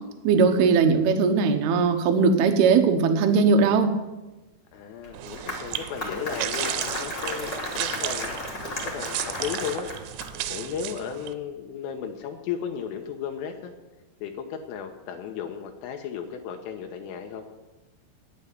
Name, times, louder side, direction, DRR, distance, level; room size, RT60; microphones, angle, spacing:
voice 1, 0.2-3.9, right 5 dB, 70° right, 5 dB, 2.5 m, -19 dB
voice 2, 4.7-8.3 8.8-9.9 10.5-13.7 14.2-17.5, left 7 dB, 80° left, 4 dB, 3.4 m, -35 dB
Applause, 5.0-10.5, left 2 dB, 35° left, 1.8 m, -34 dB
sound 1, 5.1-11.3, right 13 dB, 90° right, 3.4 m, -34 dB
9.7 x 8.7 x 9.7 m, 1.1 s
omnidirectional pair, 6.0 m